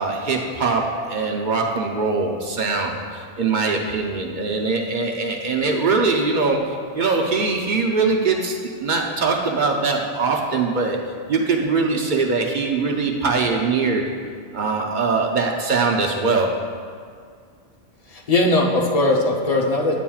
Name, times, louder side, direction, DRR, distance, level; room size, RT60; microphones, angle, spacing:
voice 1, 0.0-6.7 6.9-11.0 11.3-14.0 14.5-16.5, right 4 dB, 60° right, 1 dB, 0.5 m, -22 dB
voice 2, 18.1-20.0, left 2 dB, 40° left, 0 dB, 0.7 m, -19 dB
9.1 x 7.1 x 2.3 m, 2.1 s
omnidirectional pair, 1.3 m